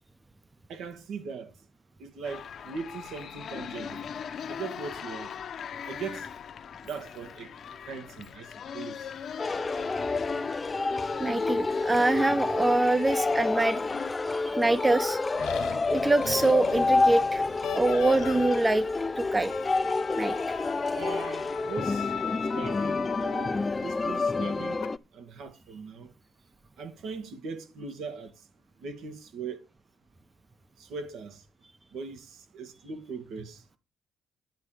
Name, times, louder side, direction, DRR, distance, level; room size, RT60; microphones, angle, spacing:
voice 1, 0.7-1.5 2.0-4.0 4.5-5.3 5.8-6.3 6.8-7.6 7.9-9.1 20.9-22.1 22.5-24.8 25.1-26.1 26.8-28.3 28.8-29.6 30.8-31.4 31.9-33.6, right 5 dB, 80° right, 2.1 m, -39 dB
sound 1, 2.2-14.1, left 7 dB, 60° left, 0.9 m, -40 dB
sound 2, 9.4-25.0, left 3 dB, 25° left, 0.5 m, -28 dB
voice 2, 11.2-13.8 14.3-15.2 15.9-17.5 17.7-18.9 19.2-19.5 20.2-20.6, right 2 dB, 20° right, 0.8 m, -25 dB
sound 3, 15.4-23.8 24.6-24.9, left 10 dB, 85° left, 1.3 m, -39 dB
10.5 x 7.5 x 5.0 m
cardioid pair, 90°, 0 cm